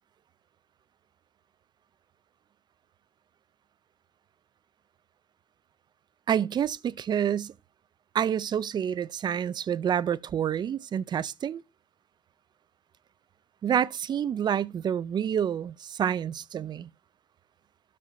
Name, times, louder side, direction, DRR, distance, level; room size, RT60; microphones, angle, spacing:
voice 1, 6.3-7.5 8.1-11.6 13.6-16.9, right 9 dB, 50° right, 0.4 m, -28 dB
12.5 x 7.5 x 2.6 m
cardioid pair, 140°, 10 cm